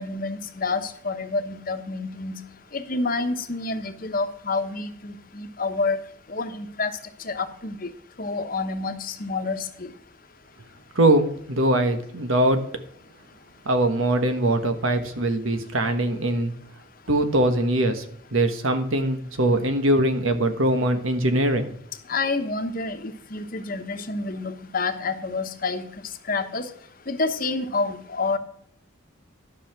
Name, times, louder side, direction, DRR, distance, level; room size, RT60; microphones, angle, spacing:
voice 1, 0.0-2.4 2.7-6.0 6.3-6.9 7.2-7.9 8.2-9.9 22.1-25.9 26.3-26.7 27.1-28.4, left 3 dB, 45° left, 8 dB, 1.0 m, -28 dB
voice 2, 10.9-12.6 13.6-16.5 17.1-18.0 18.3-21.7, right 1 dB, 90° right, 7 dB, 1.4 m, -22 dB
12.0 x 5.6 x 6.0 m, 0.67 s
head